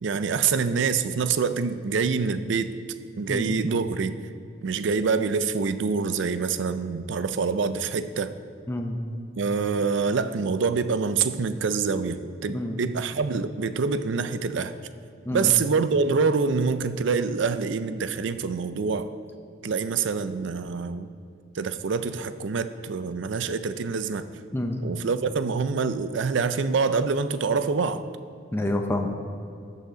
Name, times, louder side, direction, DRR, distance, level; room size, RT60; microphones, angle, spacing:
voice 1, 0.0-2.7 3.2-4.2 4.6-8.3 9.4-14.7 15.3-19.1 19.6-21.1 21.5-24.3 24.8-28.0, right 5 dB, 70° right, 12 dB, 0.4 m, -26 dB
voice 2, 3.3-3.8 8.7-9.0 12.5-12.8 15.2-15.5 24.5-24.8 28.5-29.1, left 1 dB, 10° left, 3 dB, 0.5 m, -28 dB
14.0 x 5.7 x 3.9 m, 2.5 s
head